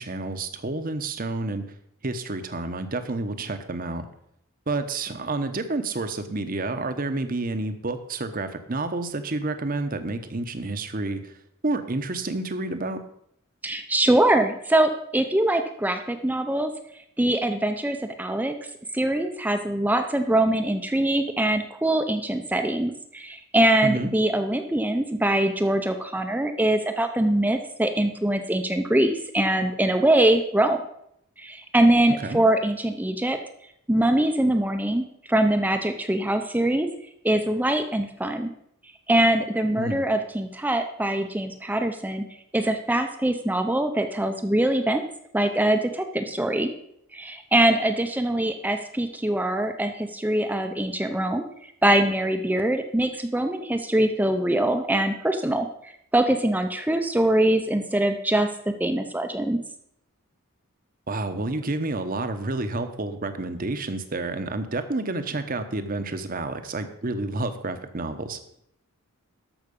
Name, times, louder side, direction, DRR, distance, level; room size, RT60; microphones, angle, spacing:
voice 1, 0.0-1.6 2.0-4.1 4.7-11.4 11.6-13.0 23.8-24.1 32.2-32.4 39.8-40.0 61.1-68.4, right 2 dB, 40° right, 9 dB, 0.9 m, -29 dB
voice 2, 13.6-16.7 17.2-18.6 18.9-30.8 31.4-33.4 33.9-36.9 37.2-38.5 39.1-42.2 42.5-45.0 45.3-46.7 47.1-51.4 51.8-58.5 58.8-59.6, right 1 dB, 10° right, 7 dB, 0.6 m, -23 dB
13.5 x 6.0 x 5.3 m, 0.73 s
head